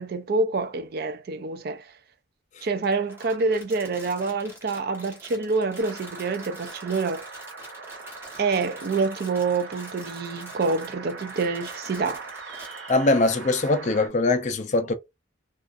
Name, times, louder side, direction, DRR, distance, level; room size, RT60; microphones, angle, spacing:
voice 1, 0.0-1.9 2.6-7.3 8.4-12.3, right 3 dB, 50° right, 0.3 m, -27 dB
Crumpling crinkling, 2.8-12.9, equal, 10° right, 1.0 m, -46 dB
sound 1, 5.8-14.1, right 4 dB, 70° right, 1.1 m, -41 dB
voice 2, 12.9-14.9, left 2 dB, 35° left, 0.4 m, -22 dB
2.4 x 2.3 x 2.5 m
head